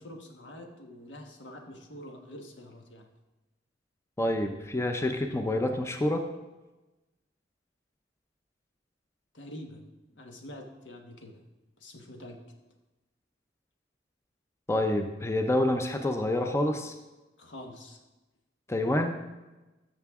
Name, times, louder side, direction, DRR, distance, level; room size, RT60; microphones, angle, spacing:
voice 1, 0.0-3.1 9.3-9.8 10.1-11.4 11.8-12.4 17.4-18.0, left 1 dB, 75° left, 3 dB, 1.4 m, -46 dB
voice 2, 4.2-6.2 14.7-16.9 18.7-19.2, left 1 dB, 15° left, 5 dB, 0.6 m, -27 dB
13.0 x 6.7 x 3.6 m, 1.1 s
head